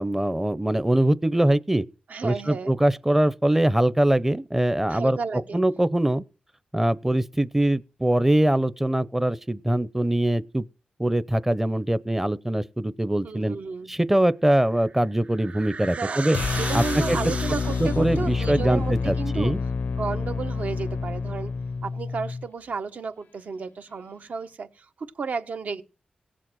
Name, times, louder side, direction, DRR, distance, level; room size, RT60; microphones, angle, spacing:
voice 1, 0.0-1.8 2.2-5.2 5.5-6.2 6.7-10.6 11.0-13.6 13.9-16.4 16.7-17.2 17.8-19.6, right 1 dB, 10° right, 0.7 m, -23 dB
voice 2, 2.1-2.7 4.9-5.6 13.2-13.9 16.0-19.5 20.0-21.5 21.8-25.8, right 5 dB, 65° right, 1.2 m, -33 dB
sound 1, 14.7-18.2, right 4 dB, 50° right, 0.6 m, -35 dB
sound 2, 16.3-22.5, left 4 dB, 65° left, 0.6 m, -28 dB
17.5 x 7.5 x 6.2 m
cardioid pair, 85°, 3 cm